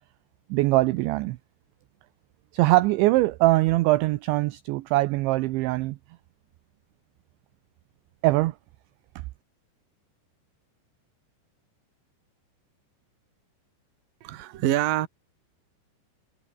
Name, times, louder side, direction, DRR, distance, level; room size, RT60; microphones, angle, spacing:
voice 1, 0.5-1.4 2.5-6.0 8.2-8.5, right 19 dB, 80° right, 2.8 m, -22 dB
voice 2, 14.2-15.1, right 14 dB, 60° right, 2.6 m, -25 dB
omnidirectional pair, 5.9 m